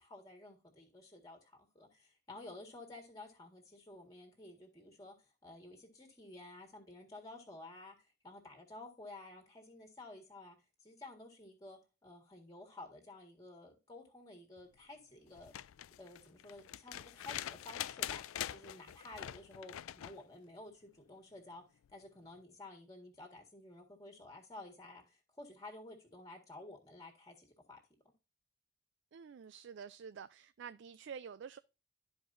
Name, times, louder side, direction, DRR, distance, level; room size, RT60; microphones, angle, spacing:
voice 1, 0.0-5.2 5.4-8.0 8.2-10.6 10.8-15.5 16.0-21.6 21.9-27.8, left 2 dB, 15° left, 1.8 m, -52 dB
sound 1, 15.3-20.2 21.8-21.9, left 12 dB, 85° left, 0.3 m, -44 dB
voice 2, 29.1-31.6, right 7 dB, 60° right, 0.3 m, -49 dB
12.5 x 4.8 x 2.6 m
head